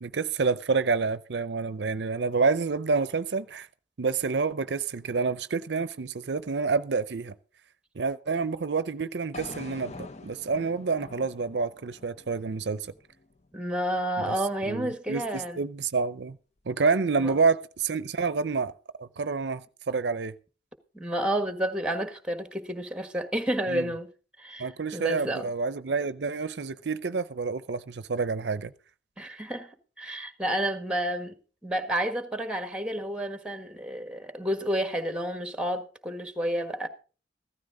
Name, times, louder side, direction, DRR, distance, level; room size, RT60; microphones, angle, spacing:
voice 1, 0.0-3.7 4.0-7.3 8.0-12.9 14.2-14.3 14.7-16.4 16.7-18.7 19.0-20.3 23.7-23.9 24.6-28.7, right 4 dB, 75° right, 0.6 m, -28 dB
sound 1, 9.3-13.5, left 2 dB, 40° left, 0.8 m, -45 dB
voice 2, 13.5-15.6 17.2-17.3 20.9-24.1 24.4-25.5 29.2-29.7 30.0-31.3 31.6-36.9, right 1 dB, 5° right, 1.5 m, -30 dB
15.0 x 13.0 x 3.8 m
head